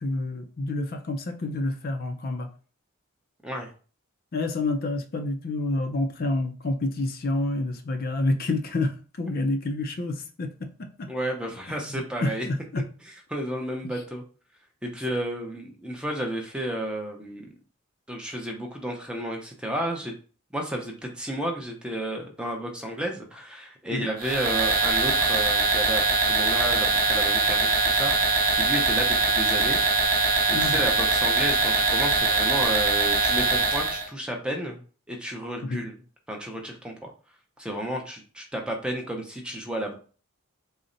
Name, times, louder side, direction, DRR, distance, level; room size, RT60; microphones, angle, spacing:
voice 1, 0.0-2.5 4.3-11.1 11.7-12.9 23.9-24.1 30.5-30.8 35.6-35.8, left 2 dB, 45° left, 6 dB, 0.4 m, -28 dB
voice 2, 11.1-12.5 13.3-14.2 14.8-17.5 18.1-20.1 20.5-29.8 30.5-34.8 35.1-35.9 36.3-37.1 37.6-39.9, right 1 dB, 5° right, 1 dB, 0.6 m, -32 dB
sound 1, 24.2-34.1, right 3 dB, 40° right, 0.7 m, -22 dB
3.9 x 2.1 x 3.8 m, 0.38 s
head